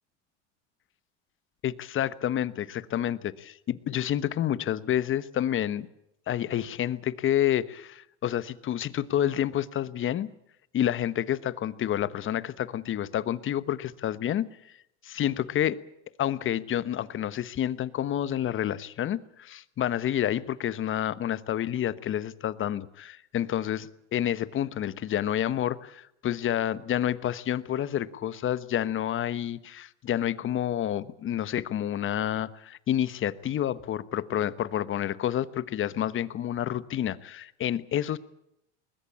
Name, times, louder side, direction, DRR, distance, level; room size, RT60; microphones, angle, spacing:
voice 1, 1.6-5.9 6.3-10.3 10.7-14.5 15.0-15.8 16.2-38.2, left 11 dB, 35° left, 16 dB, 1.2 m, -29 dB
21.0 x 20.5 x 8.6 m, 0.79 s
supercardioid pair, 105°, 35 cm